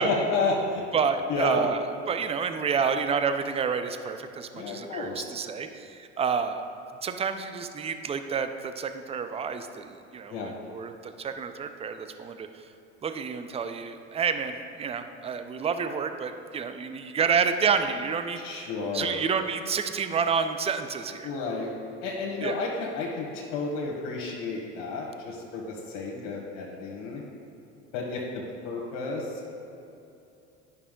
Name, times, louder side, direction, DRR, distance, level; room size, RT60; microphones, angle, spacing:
voice 1, 0.0-0.8 1.3-1.6 4.6-5.3 10.3-10.5 18.4-19.2 21.2-21.7 22.0-27.2 27.9-28.2 28.6-29.5, left 3 dB, 65° left, -3 dB, 1.4 m, -31 dB
voice 2, 0.9-6.6 7.0-12.7 13.0-21.3 22.4-22.6 26.1-26.4, right 6 dB, 15° right, 8 dB, 0.5 m, -29 dB
9.9 x 5.6 x 3.7 m, 2.7 s
hypercardioid pair, 85°, 35 cm